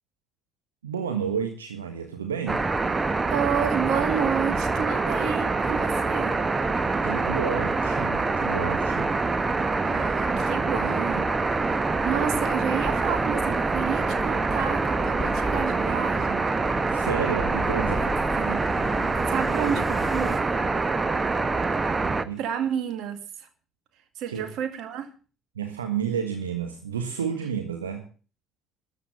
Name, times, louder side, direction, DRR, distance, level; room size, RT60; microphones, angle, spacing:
voice 1, 0.8-2.7 7.0-9.2 16.9-18.0 22.2-22.4 24.3-24.5 25.5-28.0, right 7 dB, 80° right, 1.4 m, -31 dB
sound 1, 2.5-22.2, right 3 dB, 25° right, 1.1 m, -25 dB
voice 2, 3.3-6.4 7.0-7.1 9.8-11.2 12.0-16.5 17.8-18.1 18.4-18.6 19.3-20.6 22.4-23.5 24.2-25.1, right 8 dB, 60° right, 2.1 m, -30 dB
sound 2, 8.7-20.4, left 3 dB, 10° left, 3.1 m, -39 dB
13.0 x 8.2 x 8.2 m
figure-of-eight pair, 50°, 0 cm